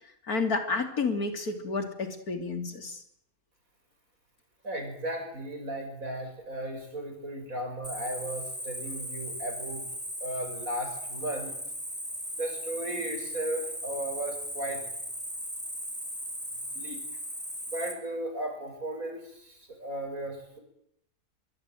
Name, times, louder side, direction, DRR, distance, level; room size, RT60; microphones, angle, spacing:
voice 1, 0.3-3.0, left 4 dB, 80° left, 7 dB, 3.6 m, -30 dB
voice 2, 4.6-9.9 10.2-11.5 12.4-14.8 16.7-17.0 17.7-20.6, right 1 dB, 65° right, 4 dB, 7.0 m, -35 dB
Cricket, 7.8-17.9, equal, 5° right, 4.2 m, -37 dB
23.5 x 22.0 x 9.3 m, 0.74 s
omnidirectional pair, 1.5 m